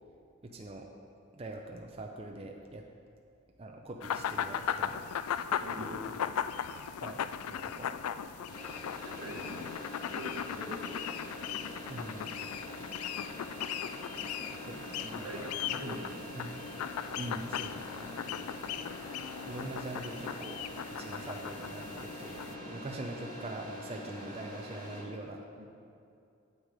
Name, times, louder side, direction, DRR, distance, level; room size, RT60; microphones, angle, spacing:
voice 1, 0.4-0.9 1.4-2.8 3.6-5.0 5.7-6.3 6.9-7.2 7.6-7.9 11.9-12.3 14.6-16.1 16.3-16.6 17.1-18.2 18.8-19.0 19.5-20.6 20.9-25.4, right 1 dB, 25° right, 1 dB, 0.5 m, -43 dB
sound 1, 4.0-22.6, left 9 dB, 85° left, 0.3 m, -38 dB
voice 2, 5.6-6.2 7.5-7.9 9.0-9.7 10.0-11.3 12.5-12.9 15.2-16.5 18.3-18.6 25.6-25.7, equal, 80° right, 1 dB, 1.2 m, -45 dB
sound 2, 8.5-25.0, equal, 20° left, 1.8 m, -45 dB
9.4 x 6.6 x 4.9 m, 2.5 s
head